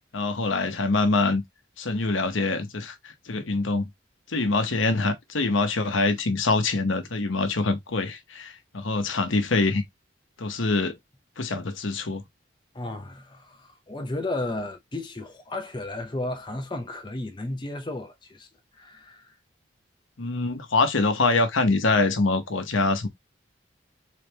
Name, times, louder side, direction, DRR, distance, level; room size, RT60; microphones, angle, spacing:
voice 1, 0.1-1.4 1.8-3.9 4.3-9.8 10.4-11.0 11.4-12.2 20.2-23.1, left 3 dB, 85° left, 0.9 m, -24 dB
voice 2, 12.7-18.5 18.7-19.3, left 2 dB, 25° left, 0.7 m, -33 dB
4.1 x 3.4 x 2.8 m
head